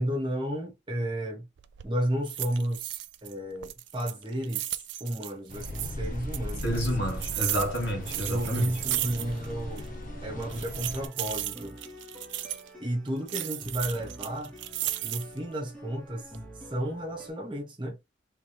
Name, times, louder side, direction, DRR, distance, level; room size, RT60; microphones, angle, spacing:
voice 1, 0.0-1.4 1.8-4.7 5.0-6.8 8.3-9.9 10.2-11.7 12.8-14.5 15.0-16.2 16.7-18.0, right 1 dB, 25° right, 1.2 m, -32 dB
sound 1, 1.6-1.9 2.3-3.3 3.6-5.9 6.3-9.5 9.8-9.9 10.4-12.7 13.3-15.4 15.9-16.4, right 15 dB, 70° right, 0.4 m, -35 dB
sound 2, 5.5-11.1, left 1 dB, 45° left, 0.8 m, -38 dB
voice 2, 6.6-8.8, equal, 65° left, 2.4 m, -29 dB
sound 3, 7.8-17.3, equal, 5° left, 1.2 m, -47 dB
3.6 x 3.3 x 3.0 m
head